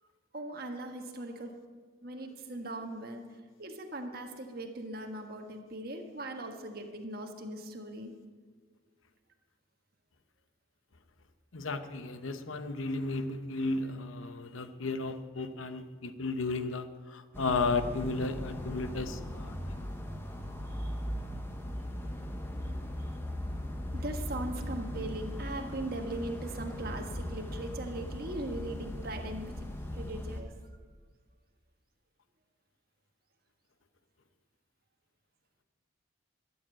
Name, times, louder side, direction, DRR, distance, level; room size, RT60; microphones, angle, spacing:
voice 1, 0.3-1.5 2.0-8.1 20.6-21.0 22.6-22.7 23.1-29.6 29.9-30.5, right 1 dB, 45° right, 4 dB, 1.4 m, -40 dB
voice 2, 11.5-19.8, left 3 dB, 80° left, 10 dB, 0.9 m, -34 dB
sound 1, 17.3-30.4, equal, 10° left, 1.0 m, -38 dB
13.0 x 7.4 x 8.8 m, 1.5 s
head